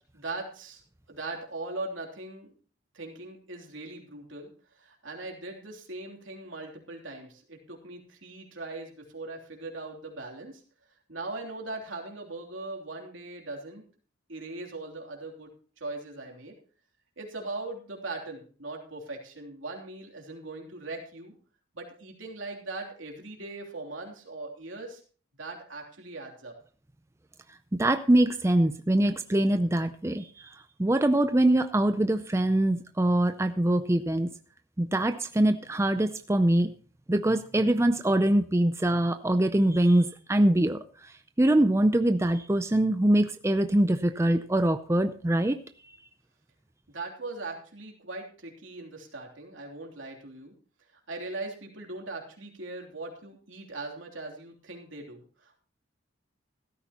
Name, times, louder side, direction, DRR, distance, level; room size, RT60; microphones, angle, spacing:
voice 1, 0.1-2.5 2.9-10.6 11.1-13.8 14.3-15.5 15.8-16.5 17.2-21.3 21.7-25.0 25.4-26.5 46.9-50.5 50.9-55.6, right 2 dB, 85° right, 1 dB, 3.2 m, -40 dB
voice 2, 27.8-30.5 30.8-34.3 34.8-36.7 37.1-45.6, right 1 dB, 15° right, 9 dB, 0.5 m, -24 dB
15.5 x 13.5 x 2.9 m, 0.41 s
head